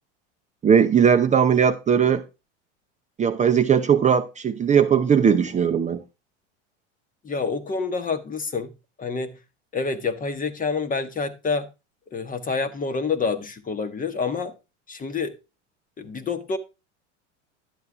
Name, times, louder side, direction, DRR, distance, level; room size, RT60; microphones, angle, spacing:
voice 1, 0.6-2.2 3.2-6.0, right 7 dB, 20° right, 0.7 m, -19 dB
voice 2, 7.2-8.7 9.0-9.3 9.7-11.7 12.1-14.5 14.9-15.3 16.0-16.6, left 4 dB, 20° left, 1.1 m, -27 dB
11.0 x 8.0 x 3.6 m
supercardioid pair, 110°, 37 cm